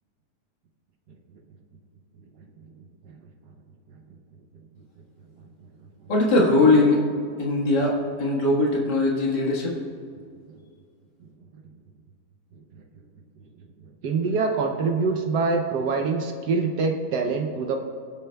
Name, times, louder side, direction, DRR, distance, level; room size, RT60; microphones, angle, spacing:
voice 1, 6.1-7.1 7.4-9.7, left 2 dB, 90° left, -3 dB, 2.2 m, -20 dB
voice 2, 14.0-17.8, right 4 dB, 75° right, 3 dB, 1.3 m, -24 dB
23.5 x 8.0 x 2.3 m, 2.2 s
omnidirectional pair, 1.8 m